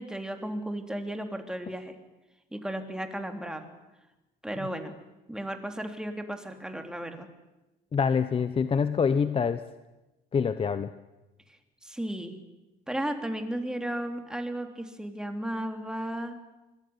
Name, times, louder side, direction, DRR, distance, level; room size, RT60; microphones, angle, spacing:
voice 1, 0.0-2.0 2.5-3.7 4.4-4.9 5.3-7.3 11.5-12.4 12.9-16.4, right 1 dB, 5° right, 5 dB, 3.6 m, -34 dB
voice 2, 7.9-9.6 10.3-10.9, left 6 dB, 35° left, 11 dB, 1.1 m, -25 dB
25.0 x 22.0 x 9.8 m, 1.0 s
cardioid pair, 110°, 17 cm